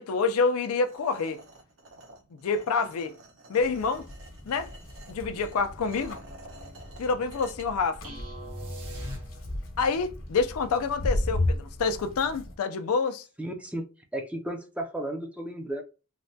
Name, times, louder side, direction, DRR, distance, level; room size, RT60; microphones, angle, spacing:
voice 1, 0.0-1.4 2.4-3.1 3.5-4.1 4.5-4.7 5.1-6.2 7.0-8.1 9.8-13.2, left 4 dB, 80° left, 0.4 m, -27 dB
sound 1, 0.8-7.7, right 2 dB, 65° right, 0.9 m, -50 dB
sound 2, 3.6-12.5, left 1 dB, 65° left, 0.9 m, -35 dB
sound 3, 8.0-9.8, equal, 90° right, 1.2 m, -39 dB
voice 2, 13.4-13.8 14.1-15.8, right 1 dB, 5° right, 0.4 m, -34 dB
3.2 x 2.1 x 2.6 m
head